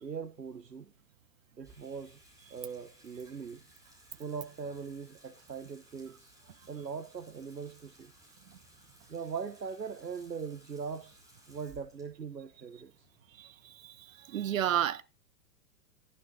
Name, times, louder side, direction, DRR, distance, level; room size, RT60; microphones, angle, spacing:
voice 1, 0.0-0.9 1.6-2.2 2.5-3.6 4.2-6.3 6.7-8.1 9.1-11.2 11.5-13.1, right 6 dB, 85° right, 1.0 m, -41 dB
Water tap faucet / Sink (filling or washing), 1.6-14.0, right 1 dB, 5° right, 5.5 m, -61 dB
voice 2, 13.4-15.0, right 10 dB, 55° right, 0.8 m, -32 dB
15.0 x 11.5 x 2.7 m
figure-of-eight pair, 110°, 49 cm